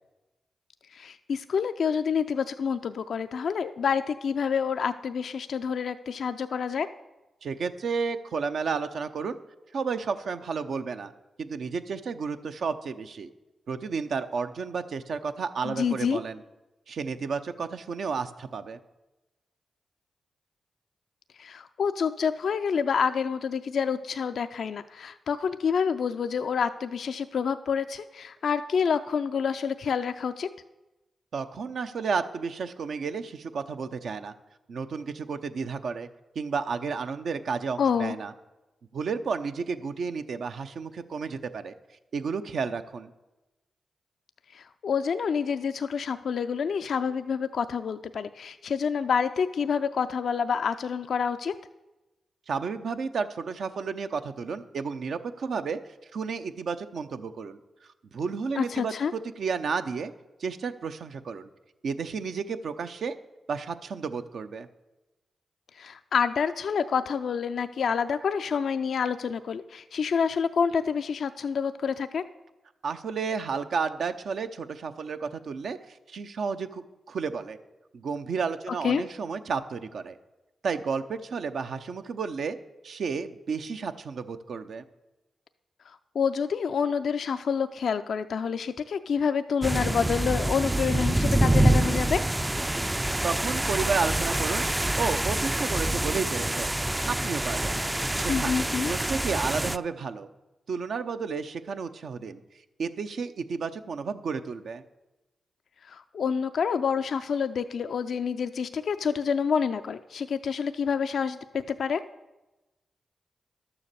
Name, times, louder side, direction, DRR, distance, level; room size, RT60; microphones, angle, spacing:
voice 1, 0.9-6.9 15.6-16.2 21.4-30.5 37.8-38.2 44.5-51.5 58.6-59.1 65.7-72.2 78.7-79.0 85.9-92.2 98.3-98.9 105.9-112.0, left 6 dB, 75° left, 10 dB, 0.4 m, -28 dB
voice 2, 7.4-9.3 9.7-11.1 11.4-13.3 13.7-16.4 16.9-18.8 31.3-34.3 34.7-36.1 36.3-38.3 38.9-41.7 42.1-43.1 52.5-55.8 56.1-57.6 58.1-60.1 60.4-61.5 61.8-63.2 63.5-64.7 72.8-77.6 77.9-80.2 80.6-82.6 82.8-84.8 93.2-94.7 95.0-96.7 97.1-97.8 98.1-98.6 98.9-100.3 100.7-102.4 102.8-104.8, right 5 dB, 75° right, 8 dB, 0.7 m, -32 dB
sound 1, 89.6-99.8, right 1 dB, 15° right, 0.4 m, -26 dB
11.5 x 7.0 x 6.7 m, 1.0 s
supercardioid pair, 45°, 0 cm